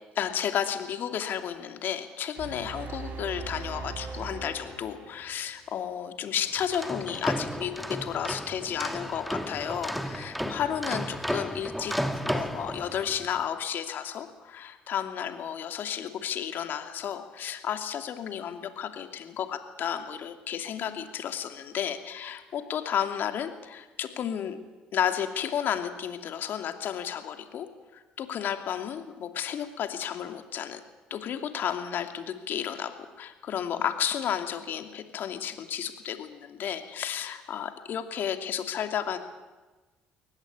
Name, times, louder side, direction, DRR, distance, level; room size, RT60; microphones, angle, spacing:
voice 1, 0.1-12.0 12.2-24.6 24.9-30.8 31.1-39.2, left 9 dB, 60° left, 7 dB, 2.7 m, -32 dB
sound 1, 2.4-5.6, right 4 dB, 50° right, 6.6 m, -40 dB
sound 2, 6.6-13.3, equal, ahead, 2.3 m, -33 dB
23.0 x 19.0 x 8.5 m, 1.2 s
hypercardioid pair, 60°, 4 cm